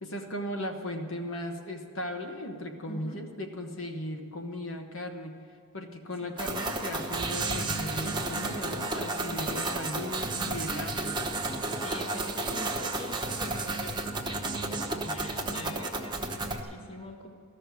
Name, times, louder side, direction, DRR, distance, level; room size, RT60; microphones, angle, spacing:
voice 1, 0.0-5.3 5.7-11.2 14.8-15.7, left 1 dB, 60° left, 4 dB, 1.2 m, -37 dB
voice 2, 2.9-3.2 6.2-6.3 9.3-9.7 11.7-17.3, left 1 dB, 25° left, 2 dB, 1.0 m, -44 dB
sound 1, 6.4-16.6, right 2 dB, 20° right, 1.0 m, -32 dB
14.0 x 6.6 x 9.3 m, 2.4 s
head